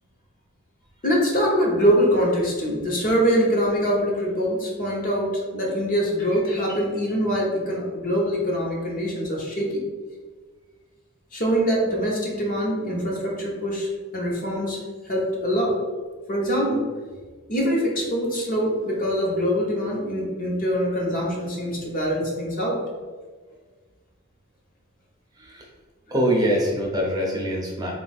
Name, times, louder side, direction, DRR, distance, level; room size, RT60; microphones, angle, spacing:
voice 1, 1.0-9.8 11.3-14.8 15.0-15.8 16.3-16.9 17.5-22.8, equal, 40° left, -3 dB, 1.0 m, -24 dB
voice 2, 26.1-27.9, equal, 20° right, -2 dB, 0.6 m, -23 dB
4.0 x 2.5 x 4.1 m, 1.4 s
head